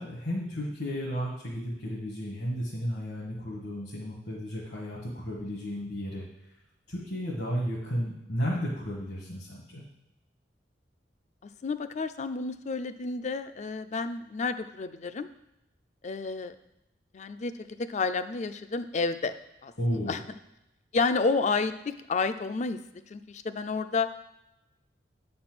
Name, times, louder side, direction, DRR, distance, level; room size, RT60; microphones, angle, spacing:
voice 1, 0.0-6.2 6.9-9.8 19.8-20.2, equal, 70° left, -4 dB, 1.5 m, -33 dB
voice 2, 11.4-15.3 16.0-16.6 17.1-17.5 17.9-19.3 19.6-19.7 20.1-20.2 20.9-22.8 23.1-24.1, left 4 dB, 40° left, 12 dB, 0.4 m, -30 dB
8.4 x 4.3 x 6.0 m, 0.89 s
head